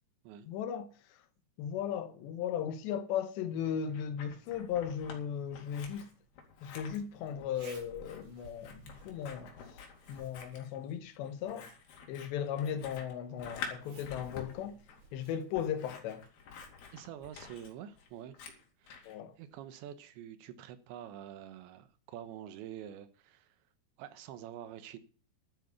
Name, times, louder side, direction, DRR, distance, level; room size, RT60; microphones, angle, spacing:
voice 1, 0.5-1.2 1.6-6.1 6.6-9.8 10.1-11.7 12.1-14.8 15.1-16.3 19.0-19.4, left 8 dB, 80° left, 3.3 m, -37 dB
Scissors, 3.7-5.2 5.5-19.2, left 6 dB, 65° left, 4.3 m, -49 dB
Zipper (clothing), 4.7-18.2, right 3 dB, 45° right, 5.6 m, -61 dB
voice 2, 16.9-18.4 18.8-19.1 19.4-23.6 24.0-25.0, right 10 dB, 85° right, 3.5 m, -47 dB
12.0 x 9.7 x 7.0 m
omnidirectional pair, 5.1 m